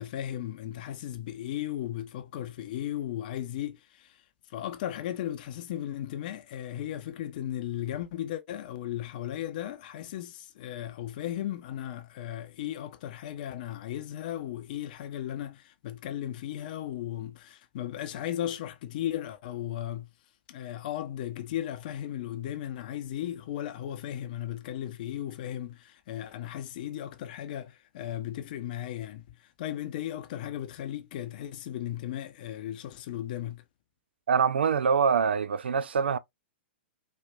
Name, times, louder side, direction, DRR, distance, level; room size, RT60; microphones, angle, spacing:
voice 1, 0.0-4.2 4.5-20.1 20.5-33.6, left 11 dB, 50° left, 0.7 m, -36 dB
voice 2, 34.3-36.2, right 6 dB, 70° right, 0.4 m, -24 dB
4.3 x 2.5 x 2.2 m
figure-of-eight pair, 110°, 6 cm